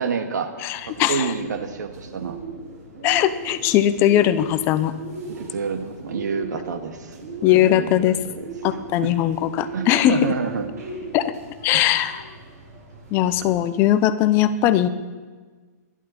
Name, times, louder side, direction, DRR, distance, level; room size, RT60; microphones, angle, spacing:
voice 1, 0.0-0.5 0.9-2.4 5.3-7.2 7.4-8.5 9.0-9.1 9.7-10.7 11.7-11.8, right 5 dB, 85° right, 7 dB, 2.0 m, -28 dB
voice 2, 0.6-1.3 3.0-4.9 7.4-8.2 8.6-10.2 11.1-11.3 11.6-12.2 13.1-14.9, left 12 dB, 25° left, 12 dB, 0.7 m, -19 dB
Bird, 0.7-13.5, right 3 dB, 70° right, 5.8 m, -38 dB
26.5 x 11.0 x 4.3 m, 1.4 s
hypercardioid pair, 165°, 9 cm